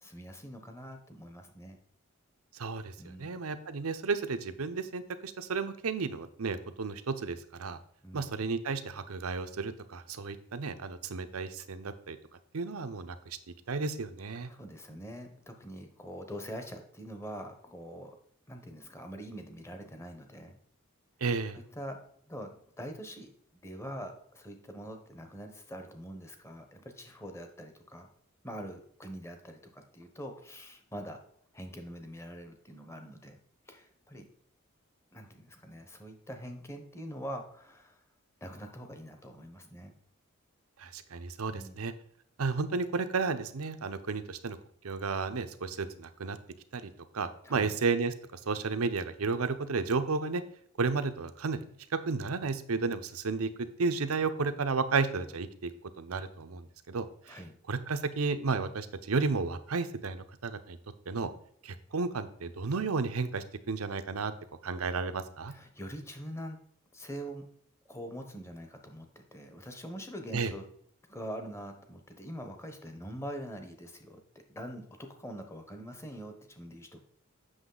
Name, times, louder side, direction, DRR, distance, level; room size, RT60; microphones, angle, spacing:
voice 1, 0.0-1.8 3.0-3.4 8.0-8.3 14.5-18.2 18.5-20.6 21.5-22.0 22.3-28.1 28.4-31.2 31.5-33.4 33.7-34.3 35.1-38.0 38.4-39.9 41.5-41.8 47.4-47.7 57.3-57.6 65.5-66.6 66.9-67.4 67.9-70.6 71.1-77.0, equal, 15° left, 5 dB, 0.9 m, -44 dB
voice 2, 2.5-2.9 3.2-7.8 8.1-12.2 12.5-13.4 13.7-14.5 21.2-21.6 40.8-41.9 42.4-44.6 44.8-46.4 46.7-50.4 50.8-51.6 51.9-53.5 53.8-55.7 56.0-57.4 57.7-60.8 61.1-61.3 61.6-64.3 64.6-65.5 70.3-70.5, right 4 dB, 90° right, 10 dB, 0.7 m, -32 dB
7.9 x 6.2 x 3.8 m, 0.64 s
head